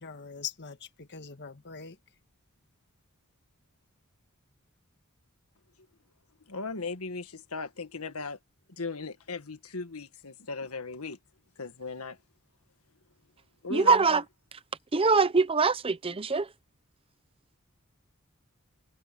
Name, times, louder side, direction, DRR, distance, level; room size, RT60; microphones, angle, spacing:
voice 1, 0.0-2.0, left 7 dB, 50° left, 1.5 m, -42 dB
voice 2, 6.5-8.4 8.8-11.2 11.6-12.2 13.6-14.2, left 3 dB, 75° left, 1.7 m, -37 dB
voice 3, 13.7-14.2 14.9-16.5, right 4 dB, 25° right, 0.6 m, -23 dB
head